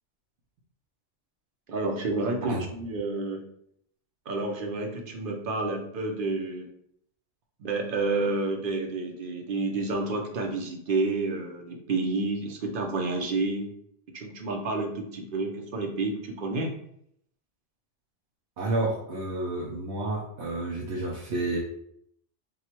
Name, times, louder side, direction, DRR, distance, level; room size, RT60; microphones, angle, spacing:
voice 1, 1.7-3.4 4.3-6.7 7.6-13.7 14.1-16.7, right 3 dB, 55° right, 2 dB, 0.9 m, -29 dB
voice 2, 18.6-21.6, right 2 dB, 85° right, -2 dB, 1.0 m, -30 dB
4.0 x 2.3 x 4.4 m, 0.69 s
omnidirectional pair, 1.1 m